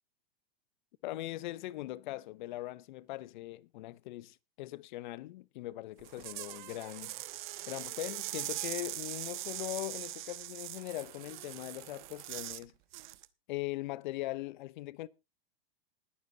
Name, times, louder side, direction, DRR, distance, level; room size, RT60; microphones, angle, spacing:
voice 1, 1.0-7.1 7.7-12.7 13.5-15.1, left 17 dB, 55° left, 0.8 m, -40 dB
sound 1, 6.0-12.6 12.9-13.2, right 17 dB, 50° right, 1.0 m, -41 dB
20.5 x 9.8 x 2.8 m
hypercardioid pair, 135°, 30 cm